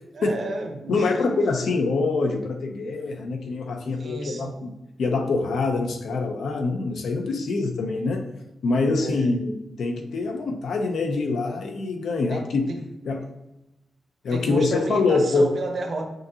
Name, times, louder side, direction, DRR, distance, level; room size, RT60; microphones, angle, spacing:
voice 1, 0.1-1.3 4.0-4.6 8.9-9.4 12.3-12.8 14.3-16.1, right 2 dB, 45° right, 4 dB, 0.7 m, -32 dB
voice 2, 0.9-4.7 5.0-8.2 8.6-9.5 9.8-12.6 13.1-13.2 14.2-15.5, left 3 dB, 80° left, 4 dB, 0.6 m, -24 dB
6.3 x 2.6 x 2.7 m, 0.95 s
wide cardioid pair, 155°, 0 cm